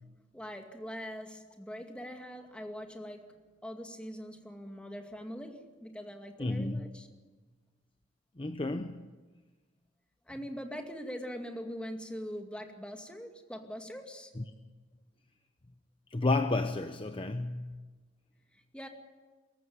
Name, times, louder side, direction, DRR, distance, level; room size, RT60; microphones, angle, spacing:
voice 1, 0.3-3.4 3.6-7.1 10.3-14.3 18.7-18.9, equal, 5° left, 4 dB, 2.3 m, -42 dB
voice 2, 6.4-6.8 8.4-9.1 14.4-14.5 16.1-17.7, left 2 dB, 30° left, 8 dB, 0.8 m, -31 dB
23.5 x 14.5 x 9.5 m, 1.3 s
head